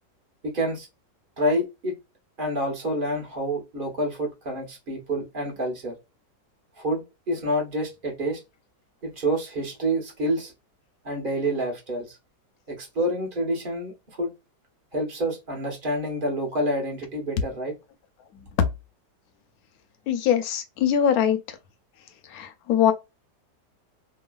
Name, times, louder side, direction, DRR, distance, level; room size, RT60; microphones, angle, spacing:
voice 1, 0.4-0.9 1.4-1.9 2.4-5.9 6.8-8.4 9.0-10.5 11.0-12.2 12.7-14.3 14.9-17.7, right 1 dB, 35° right, 1.0 m, -28 dB
voice 2, 20.1-21.4 22.3-22.9, left 9 dB, 65° left, 1.0 m, -22 dB
3.1 x 2.3 x 2.3 m
omnidirectional pair, 1.9 m